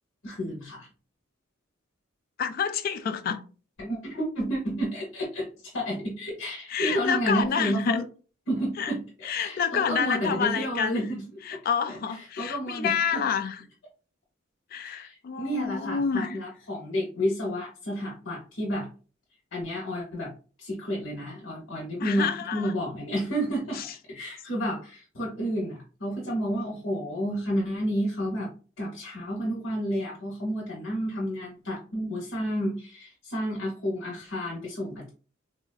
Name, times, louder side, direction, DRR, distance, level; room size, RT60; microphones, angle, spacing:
voice 1, 0.2-0.9 3.8-8.0 8.5-11.2 11.5-11.6 11.9-13.2 14.8-18.9 19.5-20.3 20.6-28.5 28.8-35.1, equal, 80° left, 0.9 m, -31 dB
voice 2, 2.4-3.4 6.7-8.0 8.8-8.9 9.2-11.1 11.4-13.6 14.7-16.4 22.0-22.7 23.7-23.9, left 7 dB, 45° left, 0.3 m, -28 dB
3.6 x 2.3 x 2.2 m
head